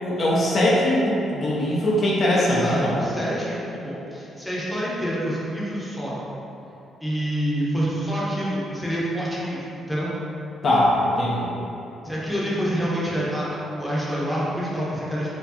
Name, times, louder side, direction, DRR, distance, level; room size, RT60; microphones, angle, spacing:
voice 1, 0.0-3.0 10.6-11.5, left 1 dB, 50° left, -5 dB, 0.6 m, -21 dB
voice 2, 2.3-6.2 7.0-10.1 12.0-15.3, equal, 5° left, -7 dB, 0.8 m, -27 dB
4.4 x 2.3 x 2.8 m, 2.9 s
cardioid pair, 90°, 0 cm